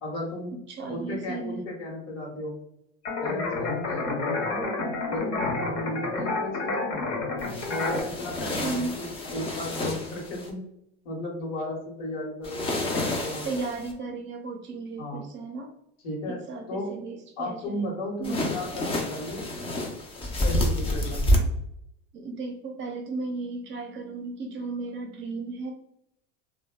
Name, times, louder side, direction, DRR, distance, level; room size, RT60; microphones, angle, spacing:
voice 1, 0.0-0.5 0.9-2.6 3.2-4.7 5.1-7.0 7.6-10.6 11.0-13.5 15.0-15.2 16.0-16.4 16.7-17.0 17.4-19.4 20.4-21.5, left 1 dB, 65° left, -1 dB, 1.1 m, -35 dB
voice 2, 0.5-1.6 5.5-5.6 8.6-9.0 13.4-15.7 16.3-17.8 18.2-18.5 22.1-25.7, right 3 dB, 40° right, 3 dB, 0.5 m, -35 dB
sound 1, 3.0-8.0, left 3 dB, 50° left, 0.8 m, -29 dB
sound 2, 7.4-10.5 12.4-13.9 18.2-21.4, left 1 dB, 20° left, 0.4 m, -29 dB
2.6 x 2.2 x 2.2 m, 0.78 s
supercardioid pair, 110°, 30 cm